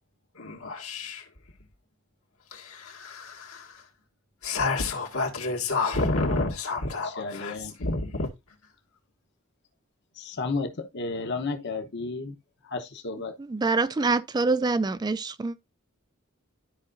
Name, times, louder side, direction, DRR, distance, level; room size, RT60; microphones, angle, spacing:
voice 1, 0.3-1.3 2.5-3.9 4.4-7.5 7.8-8.3, left 3 dB, 85° left, 1.9 m, -29 dB
voice 2, 7.0-7.7 10.2-12.4 12.6-13.4, left 3 dB, 55° left, 0.9 m, -32 dB
voice 3, 13.4-15.6, right 3 dB, 20° right, 0.3 m, -25 dB
12.5 x 4.9 x 2.5 m
head